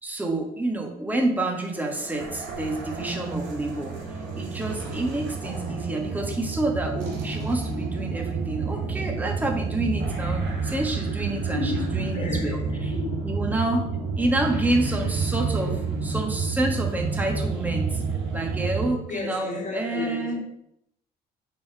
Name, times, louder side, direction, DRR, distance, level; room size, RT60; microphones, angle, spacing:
voice 1, 0.0-4.0 4.4-12.6 13.2-13.9 14.2-18.0 18.3-20.4, right 2 dB, 10° right, 1.4 m, -28 dB
sound 1, 1.7-18.9, right 4 dB, 85° right, 2.9 m, -29 dB
voice 2, 3.7-4.0 11.3-11.9 12.1-13.4 19.1-20.4, left 5 dB, 45° left, 2.2 m, -34 dB
6.2 x 4.1 x 6.0 m
cardioid pair, 110°, 17 cm